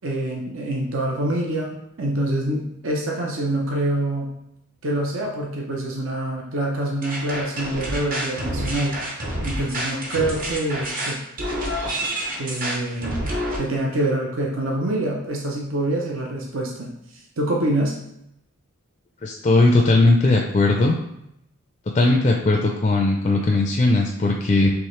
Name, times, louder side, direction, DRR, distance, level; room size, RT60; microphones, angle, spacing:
voice 1, 0.0-4.3 4.8-9.0 9.4-11.2 12.4-13.2 13.6-16.9 17.4-17.9, right 1 dB, 70° right, -1 dB, 0.7 m, -25 dB
sound 1, 7.0-13.6, right 1 dB, 40° right, 0.8 m, -28 dB
voice 2, 19.2-21.0 21.9-24.7, left 2 dB, 30° left, 1 dB, 0.4 m, -18 dB
4.7 x 3.2 x 3.2 m, 0.80 s
head